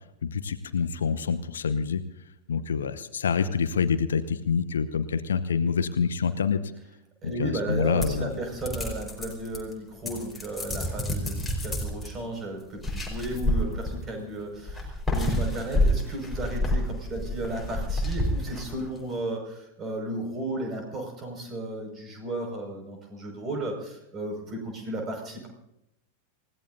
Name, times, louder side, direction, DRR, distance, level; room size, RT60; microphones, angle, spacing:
voice 1, 0.2-2.0 2.5-6.6 7.4-8.3, left 6 dB, 65° left, 12 dB, 0.8 m, -26 dB
voice 2, 7.2-25.5, right 2 dB, 25° right, 2 dB, 5.7 m, -34 dB
sound 1, 8.0-9.7 10.0-12.1 12.8-14.2 14.7-19.0, left 1 dB, 5° left, 4.6 m, -28 dB
28.5 x 16.5 x 2.7 m, 0.84 s
figure-of-eight pair, 90°, 0 cm